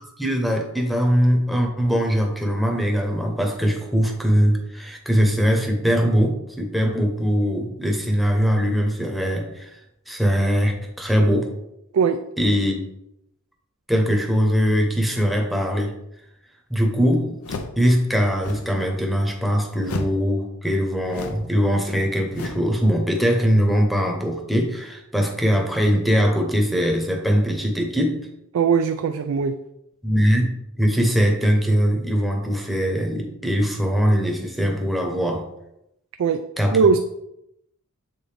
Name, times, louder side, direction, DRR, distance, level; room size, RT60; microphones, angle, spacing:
voice 1, 0.2-9.7 10.1-11.5 12.4-12.8 13.9-15.9 16.7-17.4 17.8-28.2 30.0-35.4 36.6-36.8, equal, ahead, 1 dB, 0.9 m, -21 dB
sound 1, 17.4-17.9 18.3-18.8 19.8-20.2 21.1-21.5 22.3-22.7, left 3 dB, 80° left, 0.6 m, -33 dB
voice 2, 28.5-29.5 36.2-36.4 36.7-37.0, right 6 dB, 70° right, 8 dB, 0.4 m, -19 dB
7.6 x 3.7 x 3.4 m, 0.83 s
head